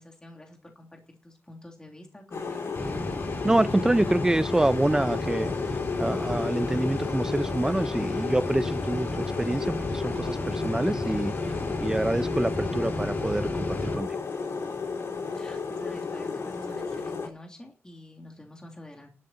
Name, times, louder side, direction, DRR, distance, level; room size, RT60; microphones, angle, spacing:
voice 1, 0.0-2.8 15.3-19.1, left 1 dB, 15° left, 3.1 m, -47 dB
sound 1, 2.3-17.3, left 4 dB, 70° left, 4.3 m, -33 dB
sound 2, 2.8-13.9, left 1 dB, 40° left, 2.9 m, -34 dB
voice 2, 3.4-5.5 6.0-11.3 11.8-14.2, right 1 dB, 15° right, 0.7 m, -26 dB
11.5 x 7.6 x 8.9 m
wide cardioid pair, 120°, 5 cm